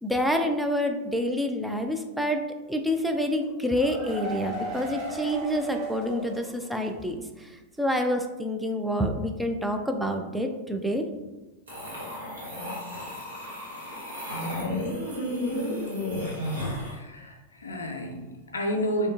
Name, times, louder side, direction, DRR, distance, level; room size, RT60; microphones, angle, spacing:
voice 1, 0.0-2.4 2.7-7.2 7.4-7.5 7.8-11.0, equal, ahead, 3 dB, 0.3 m, -27 dB
sound 1, 3.4-7.0 7.3-7.4 7.8-7.9, right 1 dB, 35° right, 0.9 m, -36 dB
sound 2, 11.7-17.0, left 1 dB, 75° right, 0.9 m, -32 dB
voice 2, 16.8-19.1, equal, 70° left, 3 dB, 0.4 m, -31 dB
3.5 x 2.3 x 2.5 m, 1.1 s
figure-of-eight pair, 90°, 0 cm